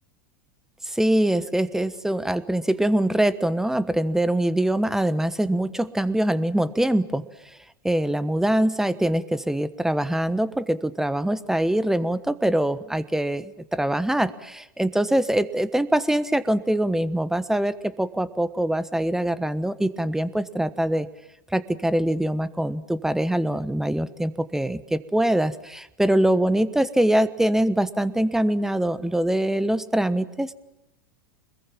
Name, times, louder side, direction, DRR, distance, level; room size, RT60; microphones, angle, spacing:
voice 1, 0.8-7.3 7.8-21.1 21.5-30.5, right 1 dB, 5° right, 15 dB, 1.2 m, -23 dB
26.0 x 21.0 x 7.4 m, 0.87 s
hypercardioid pair, 90°, 11 cm